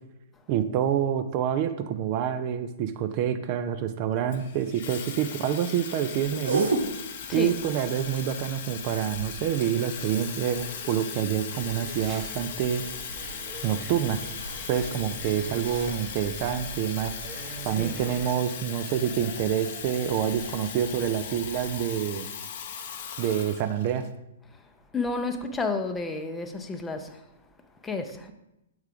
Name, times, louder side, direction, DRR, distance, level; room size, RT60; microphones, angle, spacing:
voice 1, 0.5-6.7 7.3-12.8 13.6-14.2 14.7-17.1 17.6-22.3 23.2-24.1, right 9 dB, 40° right, 0.4 m, -27 dB
Water tap faucet / Fill (with liquid), 4.3-24.1, left 7 dB, 55° left, 0.6 m, -38 dB
sound 1, 6.0-22.1, right 3 dB, 80° right, 1.0 m, -39 dB
sound 2, 11.5-18.3, right 6 dB, 25° right, 0.8 m, -44 dB
voice 2, 17.6-17.9 24.9-27.2 27.8-28.3, left 3 dB, 15° left, 0.6 m, -31 dB
6.6 x 3.6 x 4.9 m
figure-of-eight pair, 115°, 0 cm